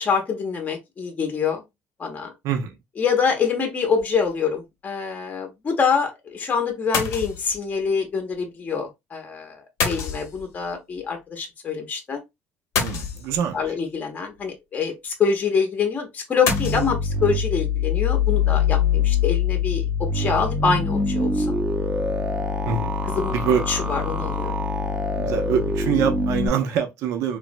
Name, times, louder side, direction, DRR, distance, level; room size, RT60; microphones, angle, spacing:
voice 1, 0.0-1.6 2.0-2.3 3.0-12.2 13.5-21.6 23.1-23.3 23.7-24.5, left 6 dB, 30° left, 0.6 m, -25 dB
sound 1, 4.0-4.3 6.9-7.6 9.8-10.7 12.8-13.7 16.5-16.9, left 6 dB, 75° left, 0.7 m, -27 dB
voice 2, 12.8-13.6 22.7-22.9 23.3-23.6 25.1-27.4, right 7 dB, 75° right, 0.5 m, -24 dB
sound 2, 16.5-26.5, left 4 dB, 15° right, 0.5 m, -24 dB
3.2 x 2.0 x 2.5 m
cardioid pair, 135°, 5 cm